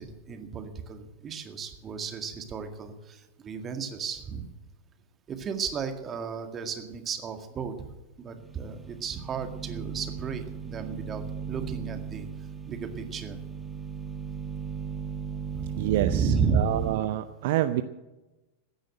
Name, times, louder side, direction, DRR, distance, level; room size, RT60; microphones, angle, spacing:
voice 1, 0.0-4.5 5.3-7.9 8.2-12.3 12.7-13.4 15.5-16.8, right 6 dB, 25° right, 7 dB, 1.9 m, -33 dB
sound 1, 8.4-17.0, right 7 dB, 10° right, 1.6 m, -37 dB
voice 2, 15.8-17.8, right 14 dB, 50° right, 11 dB, 0.6 m, -27 dB
15.5 x 10.0 x 7.8 m, 1.1 s
figure-of-eight pair, 90°, 0 cm